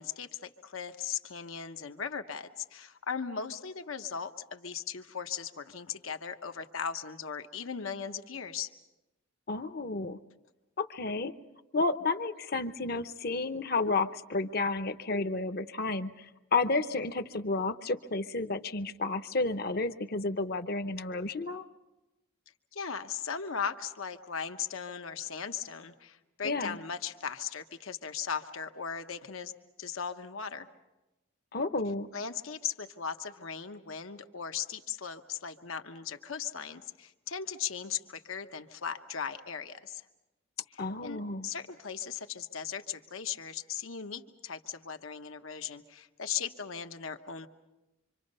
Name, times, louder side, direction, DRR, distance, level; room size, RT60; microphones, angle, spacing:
voice 1, 0.0-8.7 22.7-29.5 29.8-30.7 32.1-40.0 40.7-47.5, left 7 dB, 80° left, 7 dB, 1.1 m, -38 dB
voice 2, 9.5-10.2 10.8-11.3 11.7-16.1 16.5-21.6 26.4-26.8 31.5-32.1 40.8-41.5, left 3 dB, 50° left, 10 dB, 0.8 m, -31 dB
26.0 x 26.0 x 5.5 m, 1.0 s
head